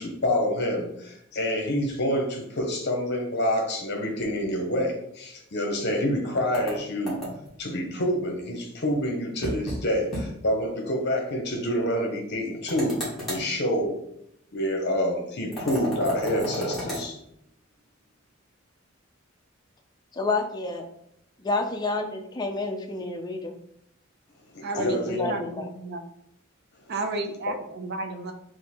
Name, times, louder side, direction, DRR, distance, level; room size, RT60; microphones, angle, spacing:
voice 1, 0.0-7.2 7.6-13.9 14.5-17.2 24.5-25.3, equal, 55° left, 0.8 m, -27 dB
sound 1, 6.5-7.6 9.4-9.8 10.1-10.3 10.6-10.7 12.7-13.5 15.5-17.0, equal, ahead, 1.6 m, -33 dB
voice 2, 20.1-20.8 21.4-23.5 24.7-25.6, left 3 dB, 20° left, 0.4 m, -29 dB
voice 3, 24.6-26.0 26.9-28.3, right 2 dB, 50° right, 0.5 m, -32 dB
3.7 x 2.6 x 4.3 m
head